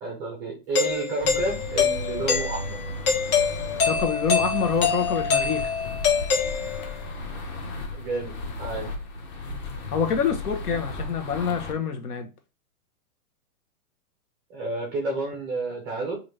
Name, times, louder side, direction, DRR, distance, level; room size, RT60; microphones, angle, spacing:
voice 1, 0.0-2.8 7.9-8.3 8.6-8.9 14.5-16.2, right 3 dB, 10° right, 0.3 m, -30 dB
Doorbell, 0.7-7.1, left 6 dB, 65° left, 1.2 m, -25 dB
sound 1, 1.2-11.7, left 2 dB, 30° left, 0.7 m, -35 dB
voice 2, 3.8-5.7 9.9-12.3, left 6 dB, 85° left, 1.0 m, -26 dB
3.9 x 2.5 x 3.2 m
hypercardioid pair, 140°, 45 cm